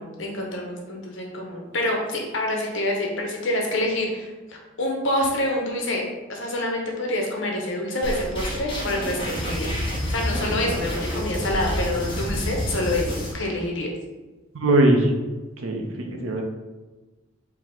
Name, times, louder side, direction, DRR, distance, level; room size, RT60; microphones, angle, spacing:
voice 1, 0.0-6.0 6.3-13.9, left 1 dB, 65° left, 0 dB, 0.8 m, -27 dB
sound 1, 8.0-13.3, equal, 25° left, 0.8 m, -28 dB
voice 2, 14.6-15.1 15.6-16.4, right 1 dB, 75° right, 3 dB, 0.6 m, -20 dB
4.5 x 2.1 x 3.8 m, 1.2 s
head